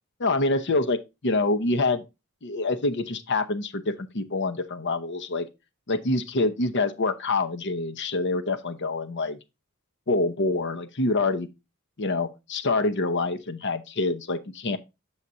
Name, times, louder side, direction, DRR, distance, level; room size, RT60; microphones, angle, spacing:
voice 1, 0.2-2.0 2.4-5.5 5.9-9.4 10.1-11.5 12.0-14.8, left 2 dB, 55° left, 0.8 m, -26 dB
8.1 x 7.3 x 2.6 m
head